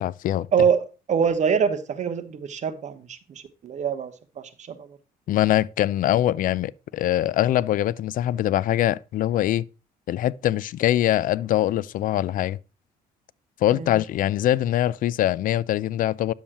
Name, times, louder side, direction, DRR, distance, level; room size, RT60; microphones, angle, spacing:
voice 1, 0.0-0.5 5.3-9.6 10.1-12.6 13.6-16.3, left 13 dB, 55° left, 0.4 m, -23 dB
voice 2, 0.5-4.9 13.7-13.9, right 7 dB, 45° right, 1.1 m, -25 dB
10.0 x 7.2 x 2.9 m
cardioid pair, 110°, 17 cm